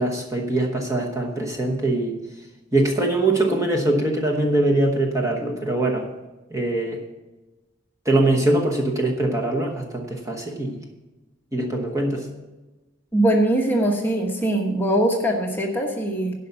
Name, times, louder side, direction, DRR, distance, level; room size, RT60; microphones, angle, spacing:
voice 1, 0.0-2.2 2.7-6.1 6.5-7.0 8.0-10.8 11.5-12.3, right 2 dB, 15° right, 0 dB, 1.0 m, -22 dB
voice 2, 13.1-16.3, right 1 dB, 10° left, 0 dB, 1.1 m, -21 dB
11.5 x 5.6 x 6.8 m, 1.1 s
head